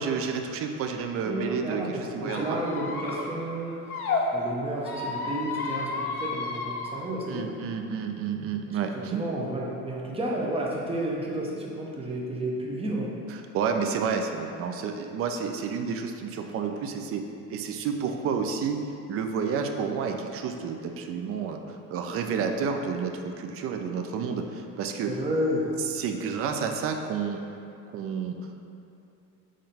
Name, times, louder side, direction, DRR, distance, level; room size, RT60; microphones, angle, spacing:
voice 1, 0.0-2.6 7.3-9.2 13.3-17.2 17.5-18.8 19.1-21.6 21.9-25.1 25.9-27.4 27.9-28.4, right 6 dB, 35° right, 5 dB, 0.4 m, -30 dB
voice 2, 1.2-4.0 4.3-7.5 8.7-13.1 25.1-25.8, right 1 dB, 15° right, -3 dB, 0.8 m, -31 dB
Squeak, 2.2-4.2 4.8-6.9, left 4 dB, 90° left, 0.6 m, -32 dB
3.7 x 3.2 x 4.1 m, 2.7 s
hypercardioid pair, 65°, 43 cm